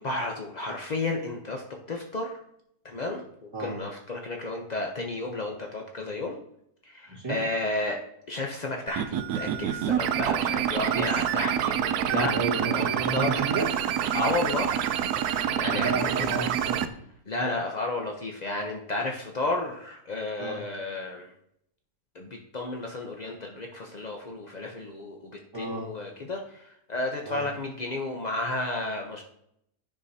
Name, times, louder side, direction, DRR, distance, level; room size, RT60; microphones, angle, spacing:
voice 1, 0.0-1.6 1.9-2.3 2.8-3.2 3.6-6.4 6.8-8.0 8.3-12.3 12.6-13.4 14.1-14.7 15.4-16.3 17.3-21.3 22.1-29.2, left 2 dB, 80° left, 1 dB, 0.3 m, -32 dB
sound 1, 8.9-16.9, right 9 dB, 70° right, 1.0 m, -27 dB
voice 2, 10.9-11.2 12.0-13.7 15.7-16.9 20.4-20.6 25.5-25.9 27.2-27.4, right 3 dB, 15° right, -7 dB, 2.4 m, -32 dB
9.7 x 5.9 x 2.7 m, 0.74 s
omnidirectional pair, 1.8 m